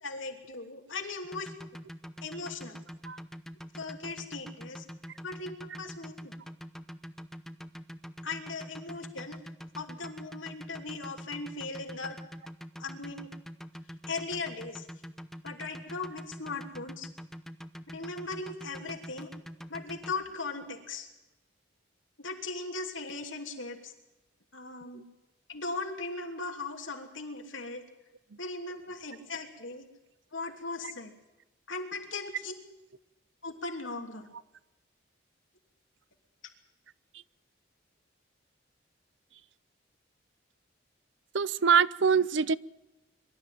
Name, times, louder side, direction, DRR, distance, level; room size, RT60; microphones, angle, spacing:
voice 1, 0.0-1.5 2.2-2.8 3.7-4.8 5.2-6.3 8.2-9.4 9.7-12.2 12.8-13.3 14.1-14.9 15.4-17.1 17.9-19.3 19.7-21.1 22.2-23.9 24.5-25.0 25.5-27.8 28.4-29.9 30.3-31.1 31.7-32.5 33.4-34.3, left 3 dB, 80° left, 3.1 m, -38 dB
sound 1, 1.2-20.1, equal, ahead, 0.7 m, -44 dB
voice 2, 41.3-42.6, right 6 dB, 70° right, 0.6 m, -24 dB
23.5 x 13.0 x 9.2 m
head